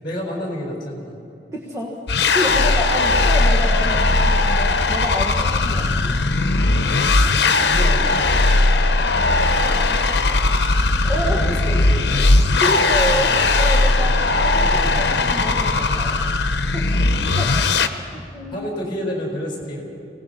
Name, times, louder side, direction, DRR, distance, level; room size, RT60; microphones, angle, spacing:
voice 1, 0.0-1.2 2.5-2.8 6.6-8.2 8.5-8.8 10.1-10.4 11.0-12.3 14.0-14.1 16.8-17.1 18.1-19.8, equal, 25° left, 0 dB, 4.5 m, -31 dB
voice 2, 1.5-1.9 2.3-6.2 7.2-7.4 9.6-9.9 11.0-11.5 12.6-16.2 16.7-16.9 17.4-17.6 18.1-18.6, left 1 dB, 15° right, -3 dB, 1.5 m, -28 dB
sound 1, 2.1-17.9, left 2 dB, 80° left, 0.9 m, -18 dB
25.0 x 18.0 x 5.7 m, 2.6 s
head